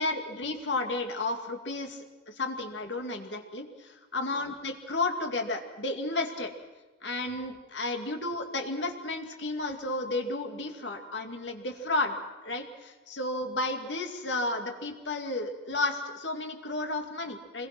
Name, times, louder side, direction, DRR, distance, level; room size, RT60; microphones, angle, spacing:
voice 1, 0.0-6.5 7.0-12.1 12.4-17.7, left 2 dB, 85° left, 5 dB, 2.3 m, -32 dB
25.0 x 21.0 x 6.1 m, 1.2 s
head